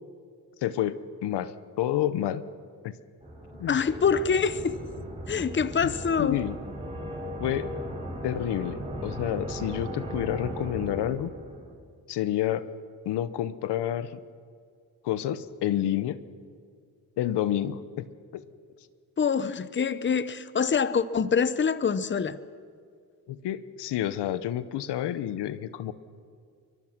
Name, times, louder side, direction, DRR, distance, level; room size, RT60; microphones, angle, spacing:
voice 1, 0.6-0.9 1.2-2.4 2.8-2.9 3.6-3.8 6.2-6.5 7.4-7.7 8.2-11.3 12.1-12.6 13.0-14.2 15.0-16.2 17.2-18.0 18.3-18.4 23.3-25.9, left 12 dB, 90° left, 14 dB, 1.0 m, -29 dB
sound 1, 3.2-11.7, equal, 15° right, 5.9 m, -37 dB
voice 2, 3.7-4.8 5.3-6.4 19.2-22.4, left 6 dB, 30° left, 15 dB, 0.9 m, -25 dB
24.0 x 21.5 x 6.0 m, 2.3 s
cardioid pair, 90°, 40 cm